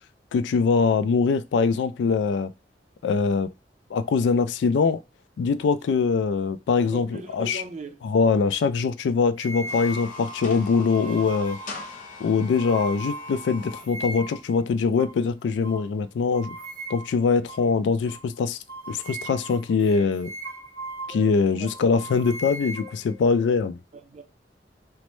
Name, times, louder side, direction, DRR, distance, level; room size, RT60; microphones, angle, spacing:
voice 1, 0.3-2.5 3.0-3.5 3.9-5.0 5.4-7.1 7.3-7.6 8.0-11.6 12.2-16.6 16.9-18.6 18.9-20.3 21.1-23.8, left 5 dB, 85° left, 0.3 m, -23 dB
voice 2, 6.8-8.0 21.5-21.7 23.9-24.2, right 2 dB, 40° right, 0.5 m, -39 dB
sound 1, 9.4-14.5 15.0-15.2 15.6-15.8 16.3-17.2 17.5-17.7 18.1-18.2 18.7-21.3 21.7-23.5, right 1 dB, 25° left, 1.7 m, -38 dB
sound 2, 9.5-13.9, left 4 dB, 45° left, 0.6 m, -41 dB
3.0 x 2.1 x 3.0 m
head